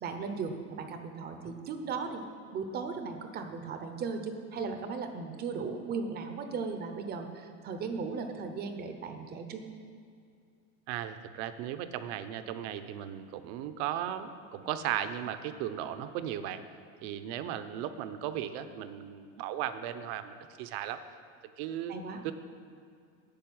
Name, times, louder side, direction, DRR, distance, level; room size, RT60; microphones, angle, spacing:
voice 1, 0.0-2.2 2.5-9.6 21.9-22.2, right 5 dB, 25° right, 6 dB, 0.7 m, -37 dB
voice 2, 10.9-16.6 17.0-21.0 21.6-21.9 22.2-22.3, right 11 dB, 55° right, 10 dB, 0.8 m, -36 dB
10.5 x 6.8 x 8.6 m, 2.4 s
cardioid pair, 170°, 40 cm